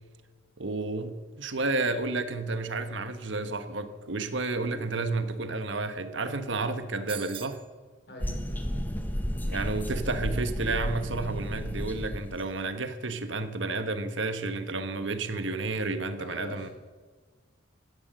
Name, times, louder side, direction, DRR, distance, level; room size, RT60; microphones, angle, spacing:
voice 1, 0.6-7.6 9.5-16.7, right 3 dB, 70° right, 1.3 m, -31 dB
sound 1, 7.1-7.7, right 9 dB, 25° right, 0.6 m, -41 dB
voice 2, 8.1-8.6 16.2-16.7, left 1 dB, 55° left, 4.6 m, -43 dB
sound 2, 8.2-12.5, equal, 10° left, 1.2 m, -32 dB
16.5 x 11.5 x 6.5 m
head